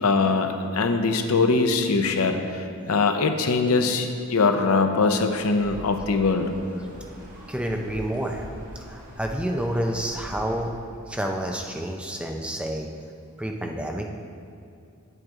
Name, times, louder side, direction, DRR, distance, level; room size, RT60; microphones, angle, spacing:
voice 1, 0.0-6.5, left 4 dB, 75° left, 6 dB, 0.7 m, -22 dB
sound 1, 5.6-10.6, right 1 dB, 40° right, 1.3 m, -42 dB
voice 2, 7.5-8.5 8.9-10.7 11.1-12.9 13.4-14.1, right 1 dB, 5° right, 2 dB, 0.5 m, -29 dB
8.9 x 7.9 x 3.7 m, 2.5 s
head